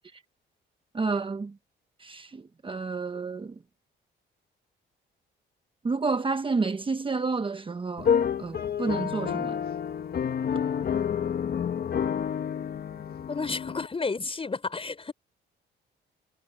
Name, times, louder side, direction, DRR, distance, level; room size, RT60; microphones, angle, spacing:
voice 1, 0.9-1.5 2.0-3.5 5.8-9.6 10.5-10.6, right 4 dB, 25° right, 1.1 m, -30 dB
sound 1, 8.0-13.9, left 8 dB, 50° left, 1.5 m, -29 dB
voice 2, 13.3-15.1, left 4 dB, 30° left, 5.7 m, -33 dB
cardioid pair, 90°, 20 cm